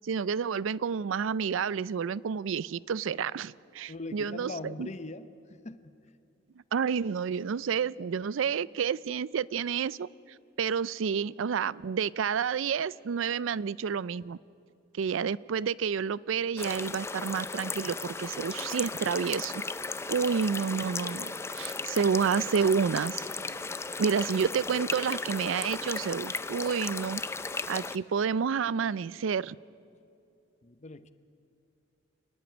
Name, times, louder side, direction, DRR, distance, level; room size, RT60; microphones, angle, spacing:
voice 1, 0.0-4.9 6.7-10.1 10.6-14.4 14.9-19.5 20.1-23.2 24.0-27.2 27.7-29.6, right 6 dB, 75° right, 21 dB, 0.4 m, -29 dB
voice 2, 3.9-6.0 30.6-31.1, left 2 dB, 35° left, 12 dB, 0.7 m, -41 dB
sound 1, 16.6-28.0, left 4 dB, 15° left, 0.4 m, -36 dB
28.5 x 11.0 x 9.3 m, 2.5 s
head